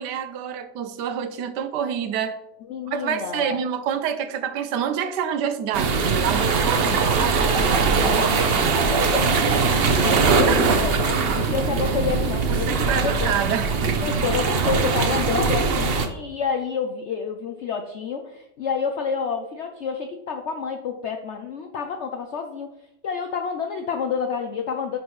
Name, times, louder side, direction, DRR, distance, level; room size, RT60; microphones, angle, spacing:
voice 1, 0.0-2.4 2.9-8.8 10.5-10.7 12.5-14.1, right 8 dB, 80° right, 10 dB, 1.3 m, -28 dB
voice 2, 2.7-3.6 8.2-8.5 8.9-13.3 14.0-22.8 23.0-25.0, left 6 dB, 75° left, 5 dB, 0.6 m, -29 dB
sound 1, 5.7-16.1, right 4 dB, 55° right, 0.7 m, -21 dB
10.0 x 4.5 x 3.1 m, 0.85 s
omnidirectional pair, 1.8 m